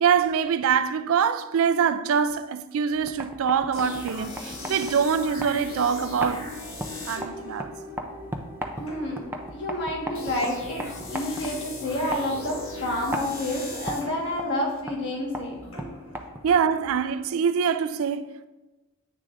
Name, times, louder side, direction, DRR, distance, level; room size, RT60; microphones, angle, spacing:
voice 1, 0.0-6.5 7.1-7.7 16.4-18.5, right 7 dB, 70° right, 0.3 m, -24 dB
sound 1, 2.9-16.7, right 1 dB, 10° right, 0.5 m, -38 dB
sound 2, 3.7-17.4, left 2 dB, 70° left, 1.7 m, -39 dB
voice 2, 8.8-9.2 9.5-10.8 11.1-15.6, left 1 dB, 55° left, 1.5 m, -29 dB
9.1 x 6.6 x 2.5 m
head